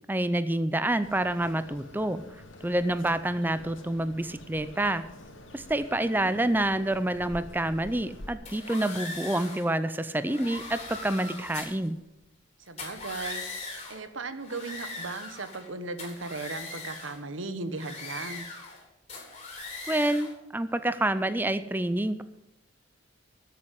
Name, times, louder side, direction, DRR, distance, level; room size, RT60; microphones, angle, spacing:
voice 1, 0.1-2.2 2.6-5.0 5.5-11.9 19.9-22.2, right 1 dB, 10° right, 12 dB, 0.5 m, -28 dB
sound 1, 1.0-8.3, left 1 dB, 75° left, 2.0 m, -47 dB
sound 2, 8.5-9.7 10.2-11.9 12.7-14.0 14.4-15.7 16.0-17.2 17.7-18.8 19.1-20.4, left 3 dB, 35° left, 3.9 m, -40 dB
voice 2, 12.6-13.5 13.9-18.5, right 3 dB, 80° right, 10 dB, 1.2 m, -37 dB
13.0 x 7.7 x 9.1 m, 0.86 s
head